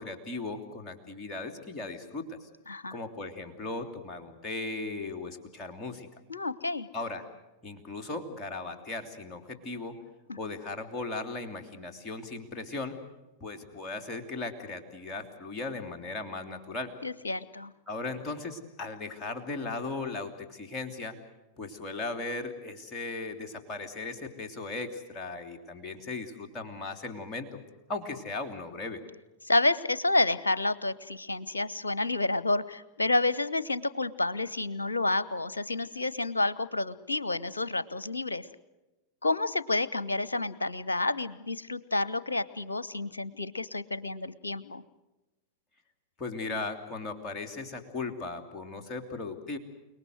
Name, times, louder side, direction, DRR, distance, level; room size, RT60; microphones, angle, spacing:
voice 1, 0.0-2.5 2.9-6.1 6.9-7.3 7.6-10.0 10.4-13.0 13.4-16.9 17.9-21.2 21.6-27.6 27.9-29.0 46.2-49.6, left 3 dB, 25° left, 4 dB, 3.3 m, -37 dB
voice 2, 2.7-3.0 6.3-6.9 10.3-10.4 17.0-17.7 29.4-38.5 39.2-44.8, left 2 dB, 75° left, 18 dB, 0.9 m, -29 dB
29.0 x 19.5 x 8.0 m, 1.0 s
figure-of-eight pair, 90°, 0 cm